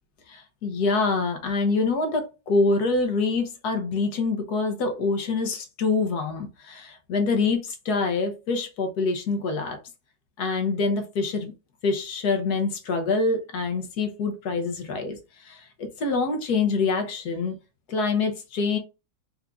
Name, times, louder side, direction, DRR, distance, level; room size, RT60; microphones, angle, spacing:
voice 1, 0.3-9.8 10.4-11.5 11.8-17.6 17.9-18.8, left 3 dB, 60° left, 5 dB, 1.3 m, -25 dB
4.6 x 2.7 x 3.6 m, 0.29 s
omnidirectional pair, 2.1 m